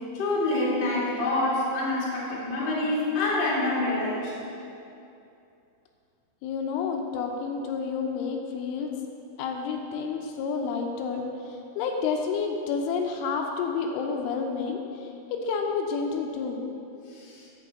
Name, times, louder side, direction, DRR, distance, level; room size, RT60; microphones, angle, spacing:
voice 1, 0.1-4.3 17.1-17.5, left 2 dB, 40° left, -6 dB, 1.8 m, -27 dB
voice 2, 6.4-8.9 9.4-16.6, left 5 dB, 80° left, 2 dB, 3.1 m, -30 dB
10.5 x 5.0 x 7.8 m, 2.7 s
omnidirectional pair, 5.6 m